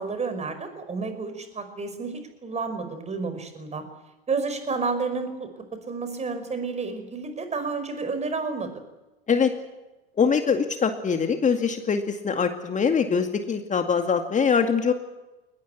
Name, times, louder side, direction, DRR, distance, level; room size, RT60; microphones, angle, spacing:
voice 1, 0.0-3.9 4.3-5.5 5.9-8.8, right 4 dB, 20° right, 9 dB, 5.3 m, -30 dB
voice 2, 10.2-14.9, left 6 dB, 25° left, 6 dB, 2.2 m, -23 dB
22.5 x 20.0 x 8.5 m, 1.0 s
hypercardioid pair, 85°, 31 cm